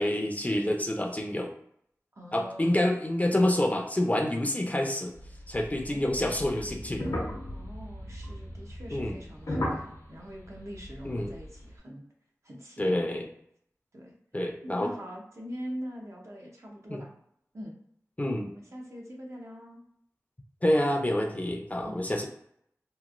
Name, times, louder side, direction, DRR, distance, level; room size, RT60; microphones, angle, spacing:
voice 1, 0.0-1.5 2.3-5.1 5.5-7.0 8.9-9.2 11.0-11.3 12.8-13.3 14.3-14.9 16.9-17.0 18.2-18.5 20.6-22.3, left 1 dB, 25° left, 2 dB, 0.5 m, -27 dB
voice 2, 2.1-2.9 5.9-6.3 7.5-12.0 12.4-13.0 13.9-14.2 14.6-17.1 17.5-17.8 18.5-19.8 21.8-22.3, equal, 55° right, -1 dB, 0.7 m, -43 dB
sound 1, 5.1-11.7, left 1 dB, 75° left, 0.7 m, -37 dB
2.9 x 2.3 x 2.5 m, 0.71 s
wide cardioid pair, 50°, 6 cm